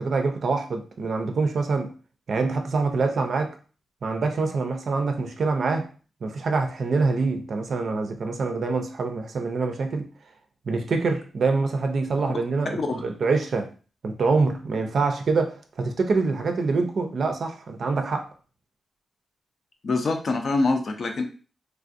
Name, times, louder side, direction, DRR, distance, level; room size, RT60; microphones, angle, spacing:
voice 1, 0.0-1.9 2.3-3.5 4.0-5.9 6.2-10.1 10.7-13.7 14.0-18.2, right 4 dB, 60° right, 0.4 m, -25 dB
voice 2, 19.8-21.2, left 3 dB, 50° left, 0.5 m, -24 dB
3.3 x 2.4 x 2.5 m
wide cardioid pair, 125°, 0 cm